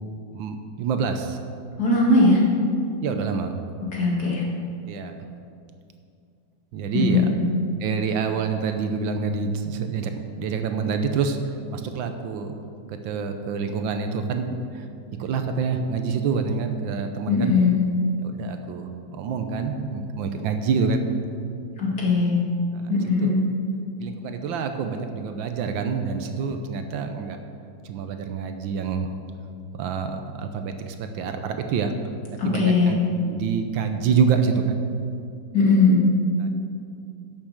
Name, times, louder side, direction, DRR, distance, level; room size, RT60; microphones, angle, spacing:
voice 1, 0.3-1.4 3.0-3.8 4.8-5.1 6.7-7.3 7.8-12.5 12.9-14.9 15.2-17.6 18.2-21.1 22.7-22.9 23.2-23.4 24.0-27.4 27.8-29.1 29.8-31.9 32.4-33.0 33.2-34.9 36.4-36.5, right 5 dB, 75° right, 7 dB, 1.5 m, -27 dB
voice 2, 1.8-2.4 3.9-4.4 6.9-7.4 17.3-17.7 21.8-22.4 22.9-23.4 32.4-32.9 35.5-36.0, left 3 dB, 50° left, -4 dB, 2.8 m, -19 dB
11.5 x 6.8 x 6.5 m, 2.4 s
omnidirectional pair, 2.1 m